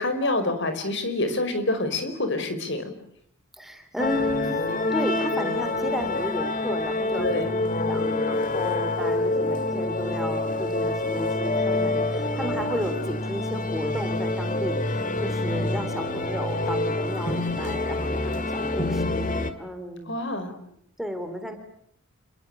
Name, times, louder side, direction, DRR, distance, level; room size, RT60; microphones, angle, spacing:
voice 1, 0.0-2.9 7.2-7.5 20.1-20.5, left 2 dB, 55° left, 9 dB, 5.1 m, -27 dB
voice 2, 3.5-4.6 4.9-20.2 21.0-21.6, equal, ahead, 6 dB, 3.3 m, -34 dB
sound 1, 4.0-19.5, left 2 dB, 35° left, 2.1 m, -26 dB
29.0 x 22.5 x 8.9 m, 0.71 s
head